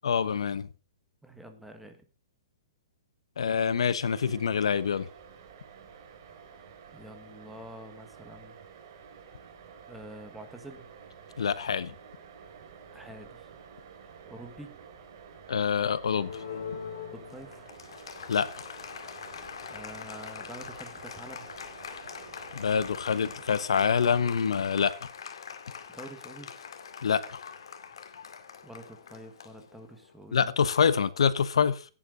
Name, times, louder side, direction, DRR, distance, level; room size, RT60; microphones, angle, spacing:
voice 1, 0.0-0.7 3.4-5.1 11.4-11.9 15.5-16.4 18.3-18.5 22.5-24.9 27.0-27.4 30.3-31.8, left 6 dB, 90° left, 1.1 m, -26 dB
voice 2, 1.2-2.0 6.9-8.6 9.9-10.9 12.9-13.5 14.2-14.8 17.1-17.7 19.7-21.5 25.9-26.5 28.6-30.5, right 1 dB, ahead, 1.4 m, -47 dB
sound 1, 4.0-23.7, right 6 dB, 40° right, 3.4 m, -50 dB
Applause, 16.1-30.2, left 7 dB, 70° left, 2.2 m, -43 dB
16.0 x 10.0 x 3.9 m
hypercardioid pair, 170°, 3 cm